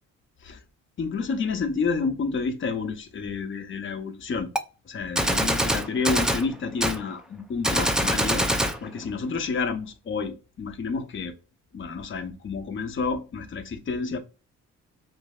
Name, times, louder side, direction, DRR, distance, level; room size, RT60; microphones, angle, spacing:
voice 1, 1.0-4.5 4.9-11.3 11.7-14.2, left 4 dB, 40° left, 0.7 m, -30 dB
Gunshot gunfire, 4.6-4.7 5.2-6.5 6.8-7.0 7.6-8.8, equal, ahead, 0.4 m, -24 dB
5.0 x 2.0 x 2.3 m
cardioid pair, 90°, 30 cm